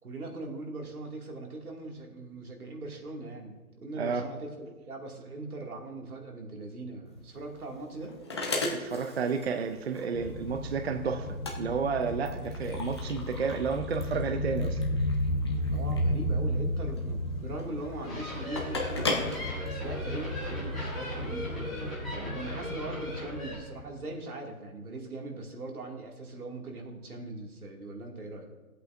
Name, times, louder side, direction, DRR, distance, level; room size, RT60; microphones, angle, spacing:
voice 1, 0.0-8.2 15.6-19.1 19.6-28.5, right 2 dB, 80° right, 1 dB, 2.1 m, -40 dB
sound 1, 7.1-20.4, left 2 dB, 20° left, 0.6 m, -38 dB
voice 2, 8.7-11.3 11.6-14.8, right 5 dB, 45° right, 7 dB, 0.5 m, -31 dB
sound 2, 10.1-24.0, left 1 dB, 65° left, 1.8 m, -34 dB
sound 3, 17.8-23.5, equal, ahead, 1.8 m, -39 dB
15.0 x 8.1 x 2.5 m, 1.2 s
hypercardioid pair, 160°, 44 cm